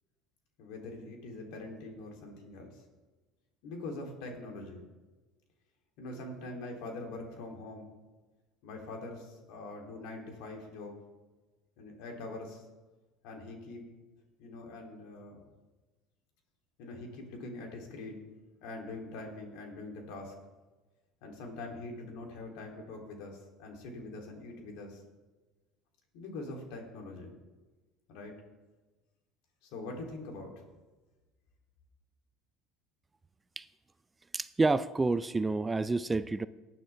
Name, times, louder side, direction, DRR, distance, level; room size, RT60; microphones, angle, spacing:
voice 1, 0.6-2.8 3.6-4.9 6.0-7.9 8.6-10.9 11.8-12.6 13.2-13.8 14.4-15.4 16.8-18.2 18.6-20.4 21.2-25.0 26.1-27.3 28.1-28.3 29.6-30.5, left 2 dB, 75° left, 1 dB, 3.0 m, -43 dB
voice 2, 34.3-36.5, right 3 dB, 15° right, 14 dB, 0.4 m, -29 dB
18.5 x 9.3 x 3.4 m, 1.2 s
supercardioid pair, 115°, 0 cm